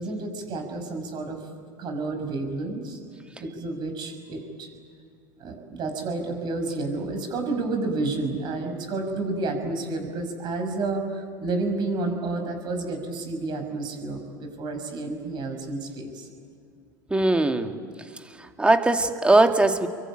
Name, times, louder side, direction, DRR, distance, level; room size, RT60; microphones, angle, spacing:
voice 1, 0.0-1.4 1.8-3.0 3.4-4.7 5.4-16.3, right 3 dB, 45° right, 5 dB, 6.3 m, -30 dB
voice 2, 17.1-17.8 18.6-19.9, right 2 dB, 10° right, 6 dB, 2.2 m, -20 dB
28.5 x 23.5 x 9.0 m, 2.4 s
hypercardioid pair, 90°, 11 cm